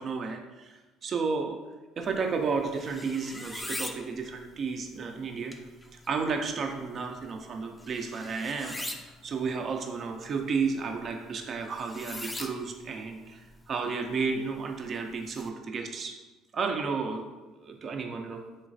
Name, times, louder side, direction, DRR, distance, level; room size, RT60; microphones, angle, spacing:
voice 1, 0.0-1.6 2.0-5.5 5.9-8.8 9.2-16.1 16.5-17.2 17.6-18.4, right 5 dB, 45° right, 3 dB, 0.4 m, -32 dB
sound 1, 2.0-15.5, left 2 dB, 15° left, 0.4 m, -44 dB
3.7 x 3.1 x 2.5 m, 1.2 s
hypercardioid pair, 65°, 0 cm